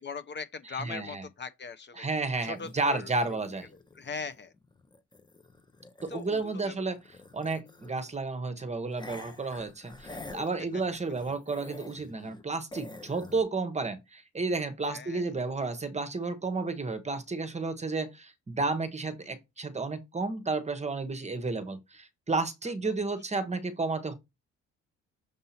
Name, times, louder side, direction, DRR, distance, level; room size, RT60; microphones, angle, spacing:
voice 1, 0.0-3.4 3.7-4.5 6.1-6.8 7.6-8.0 14.9-15.3 22.6-23.0, left 5 dB, 35° left, 0.7 m, -41 dB
voice 2, 0.8-1.2 2.0-3.7 6.0-7.0 7.3-24.1, right 3 dB, 20° right, 1.0 m, -32 dB
sound 1, 2.3-6.6 6.9-8.1 8.9-12.4 12.7-13.4, left 2 dB, 15° left, 0.8 m, -48 dB
6.8 x 2.7 x 5.7 m
cardioid pair, 90°, 30 cm